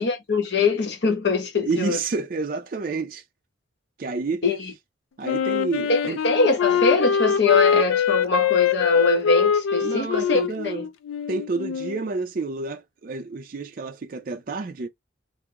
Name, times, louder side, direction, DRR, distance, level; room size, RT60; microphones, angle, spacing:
voice 1, 0.0-2.0 4.4-4.7 5.9-10.8, left 3 dB, 60° left, 1.0 m, -23 dB
voice 2, 1.6-3.2 4.0-4.4 5.2-6.2 9.8-10.9 11.3-14.9, right 3 dB, 45° right, 0.4 m, -29 dB
Wind instrument woodwind instrument, 5.2-12.0, left 8 dB, 85° left, 0.4 m, -23 dB
3.6 x 2.0 x 2.8 m
head